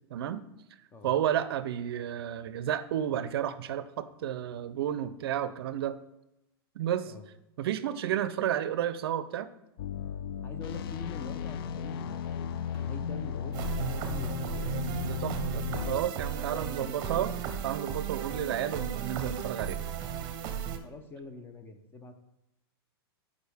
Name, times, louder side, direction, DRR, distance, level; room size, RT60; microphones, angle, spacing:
voice 1, 0.1-0.4 1.0-6.0 6.8-7.1 7.6-9.5 15.0-17.3 17.6-20.1, right 10 dB, 70° right, 13 dB, 0.5 m, -32 dB
Invalid Argument, 9.8-16.0, left 8 dB, 65° left, 0.4 m, -35 dB
voice 2, 10.4-12.5 12.8-14.5 16.5-17.5 20.8-22.2, left 4 dB, 15° left, 7 dB, 0.6 m, -45 dB
sound 1, 10.7-11.1 12.7-13.1 14.1-14.3, left 3 dB, 40° left, 1.1 m, -56 dB
sound 2, 13.5-20.8, right 8 dB, 35° right, 0.8 m, -35 dB
8.1 x 5.0 x 3.4 m, 0.89 s
hypercardioid pair, 140°, 13 cm